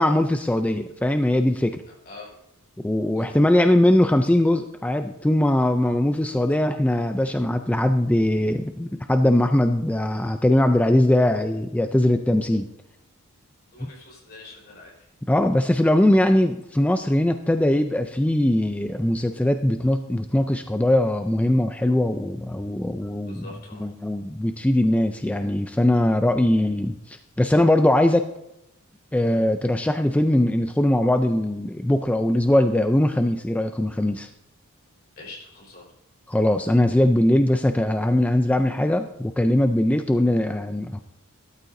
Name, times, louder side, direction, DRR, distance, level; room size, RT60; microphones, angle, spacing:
voice 1, 0.0-1.8 2.8-12.7 13.8-13.9 15.3-23.5 23.8-28.3 29.1-34.3 36.3-41.0, left 1 dB, 5° left, 7 dB, 0.4 m, -21 dB
voice 2, 2.0-2.4 3.2-3.3 13.7-15.1 23.3-23.9 35.2-35.9, left 2 dB, 50° left, -3 dB, 4.7 m, -44 dB
14.0 x 12.5 x 2.6 m, 0.85 s
head